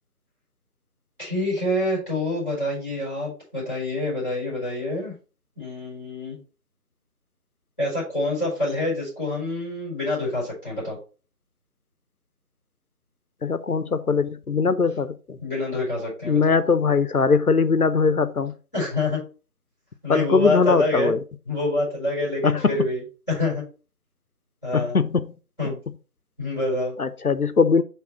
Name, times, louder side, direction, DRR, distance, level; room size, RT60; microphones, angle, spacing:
voice 1, 1.2-5.1 5.6-6.4 7.8-11.0 15.4-16.5 18.7-19.2 20.0-21.1 21.4-23.6 24.6-25.0 25.6-25.8 26.4-27.0, left 2 dB, 5° right, 4.2 m, -26 dB
voice 2, 13.4-15.4 16.3-18.5 20.1-21.2 22.4-22.7 24.7-25.3 27.0-27.8, left 5 dB, 65° left, 0.8 m, -21 dB
9.2 x 3.5 x 4.2 m
figure-of-eight pair, 170°, 48 cm